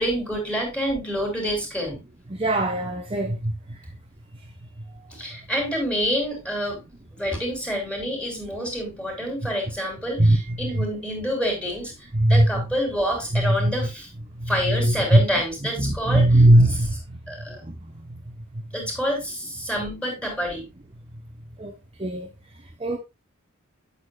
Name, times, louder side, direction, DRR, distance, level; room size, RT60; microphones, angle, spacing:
voice 1, 0.0-2.0 5.1-6.8 7.1-14.1 14.5-16.3 17.3-17.6 18.7-20.7, equal, 5° left, 4.0 m, -27 dB
voice 2, 2.3-3.5 10.2-10.8 12.1-12.6 13.3-13.9 14.4-15.2 15.8-16.9 17.7-17.8 21.6-21.7 22.0-22.3 22.8-23.0, right 1 dB, 25° right, 1.0 m, -20 dB
8.6 x 8.6 x 2.4 m
head